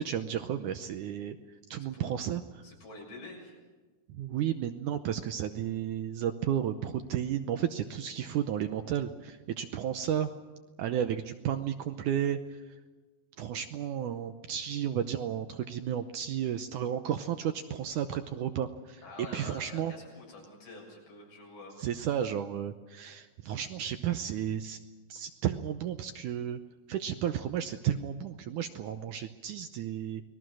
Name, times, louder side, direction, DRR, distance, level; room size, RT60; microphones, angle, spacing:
voice 1, 0.0-1.4 1.7-2.6 4.1-10.3 10.8-12.6 13.4-19.0 19.3-19.9 21.8-24.8 25.1-26.6 26.9-30.2, right 10 dB, 75° right, 8 dB, 1.9 m, -33 dB
voice 2, 1.8-2.1 2.6-3.6 19.0-21.9, left 2 dB, 85° left, -1 dB, 9.0 m, -47 dB
29.5 x 20.5 x 6.3 m, 1.3 s
omnidirectional pair, 4.3 m